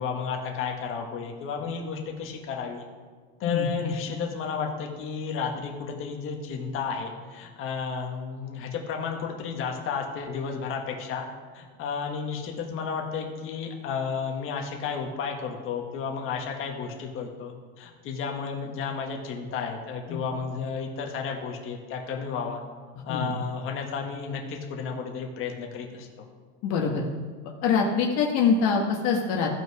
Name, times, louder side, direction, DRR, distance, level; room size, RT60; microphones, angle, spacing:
voice 1, 0.0-2.8 3.4-11.3 11.5-22.6 23.0-26.1, left 6 dB, 40° left, 1 dB, 1.6 m, -32 dB
voice 2, 26.6-27.1 27.6-29.5, left 5 dB, 60° left, 0 dB, 1.4 m, -24 dB
14.5 x 5.7 x 4.7 m, 1.6 s
supercardioid pair, 135°, 31 cm